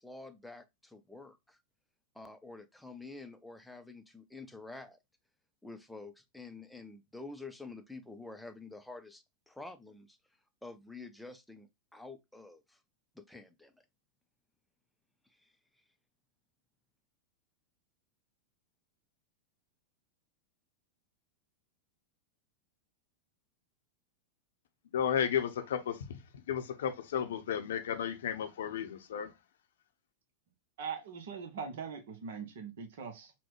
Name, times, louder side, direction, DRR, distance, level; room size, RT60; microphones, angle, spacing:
voice 1, 0.0-1.6 2.1-5.0 5.6-10.2 10.6-12.8 13.1-13.7 15.4-15.5, left 3 dB, ahead, 0.5 m, -48 dB
voice 2, 24.9-29.3, left 8 dB, 60° left, 0.7 m, -33 dB
voice 3, 30.8-33.3, right 6 dB, 55° right, 0.8 m, -41 dB
5.8 x 2.2 x 3.0 m
figure-of-eight pair, 90°, 0 cm